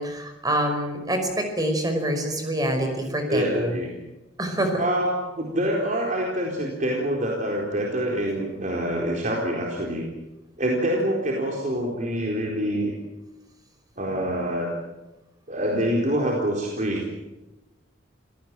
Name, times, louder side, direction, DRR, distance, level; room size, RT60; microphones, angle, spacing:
voice 1, 0.0-3.8 4.4-4.8, right 1 dB, 20° right, 5 dB, 5.3 m, -26 dB
voice 2, 3.3-3.9 4.8-5.1 5.4-10.0 10.6-12.9 14.0-14.7 15.5-17.1, right 1 dB, 40° right, -1 dB, 4.3 m, -26 dB
28.0 x 18.0 x 9.1 m, 1.0 s
head